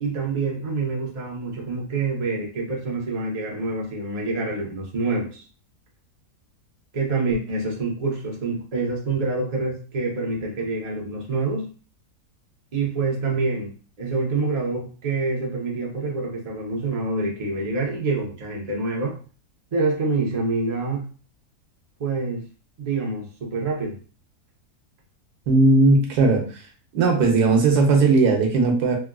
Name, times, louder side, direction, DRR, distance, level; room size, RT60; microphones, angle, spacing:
voice 1, 0.0-5.4 6.9-11.7 12.7-19.2 19.7-21.0 22.0-22.5 22.8-24.0, right 3 dB, 40° right, -2 dB, 0.6 m, -26 dB
voice 2, 25.5-26.7 26.9-29.0, right 3 dB, 85° right, 1 dB, 1.3 m, -18 dB
3.4 x 2.4 x 2.2 m, 0.38 s
omnidirectional pair, 1.6 m